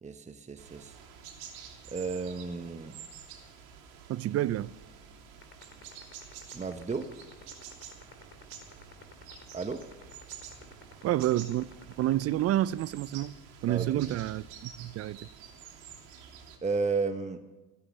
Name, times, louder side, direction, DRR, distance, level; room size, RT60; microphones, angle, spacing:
voice 1, 0.0-1.0 1.9-3.0 6.5-7.1 9.5-9.8 13.7-14.0 16.6-17.4, right 4 dB, 15° right, 1.1 m, -33 dB
sound 1, 0.6-16.6, right 7 dB, 75° right, 3.1 m, -49 dB
voice 2, 4.1-4.7 11.0-11.7 12.0-13.3 13.6-15.2, right 14 dB, 35° right, 0.5 m, -29 dB
sound 2, 5.4-13.0, left 7 dB, 30° left, 3.0 m, -50 dB
15.5 x 14.5 x 6.4 m
supercardioid pair, 90°, 41 cm